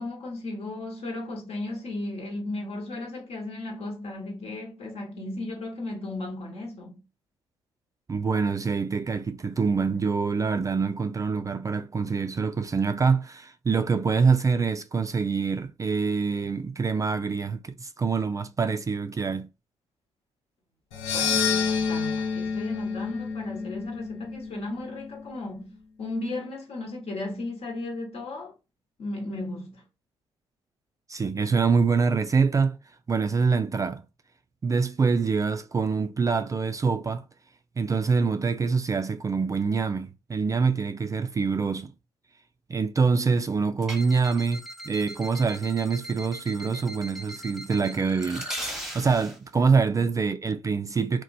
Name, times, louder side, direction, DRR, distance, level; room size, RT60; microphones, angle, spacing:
voice 1, 0.0-7.0 21.1-28.5 29.0-29.8 49.9-50.0, left 2 dB, 55° left, 1.1 m, -35 dB
voice 2, 8.1-19.5 31.1-32.8 33.1-34.0 34.6-37.2 37.8-41.9 42.7-48.5 48.9-51.2, right 5 dB, 25° right, 0.3 m, -25 dB
sound 1, 20.9-25.2, left 6 dB, 80° left, 0.6 m, -29 dB
sound 2, 43.8-49.4, equal, ahead, 1.0 m, -39 dB
2.9 x 2.1 x 2.6 m
hypercardioid pair, 45°, 13 cm